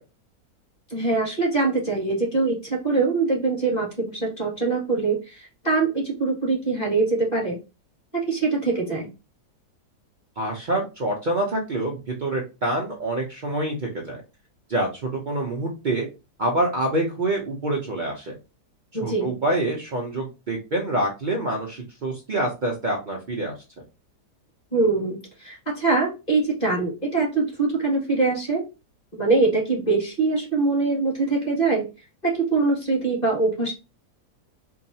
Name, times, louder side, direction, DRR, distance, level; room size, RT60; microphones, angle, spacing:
voice 1, 0.9-7.6 8.1-9.1 18.9-19.3 24.7-28.6 29.1-31.8 32.2-33.7, right 3 dB, 25° left, -2 dB, 1.6 m, -23 dB
voice 2, 10.4-14.2 14.7-16.1 16.4-18.3 19.0-23.5, right 1 dB, 80° right, -1 dB, 0.4 m, -26 dB
4.6 x 2.3 x 2.7 m, 0.28 s
omnidirectional pair, 1.8 m